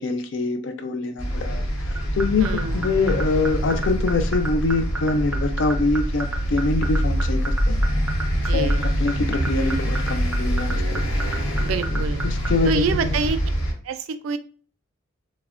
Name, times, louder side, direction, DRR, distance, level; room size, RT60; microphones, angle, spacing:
voice 1, 0.0-2.5 2.7-7.8 8.5-11.0 11.9-13.2, left 3 dB, 60° left, 8 dB, 0.4 m, -25 dB
sound 1, 1.2-13.7, equal, 90° left, 0.9 m, -24 dB
sound 2, 2.0-12.5, right 4 dB, 5° right, 0.4 m, -29 dB
voice 2, 2.4-2.9 8.4-8.8 11.6-12.3 12.6-13.4 13.8-14.4, right 5 dB, 80° right, 11 dB, 0.3 m, -26 dB
3.2 x 2.1 x 2.4 m, 0.41 s
head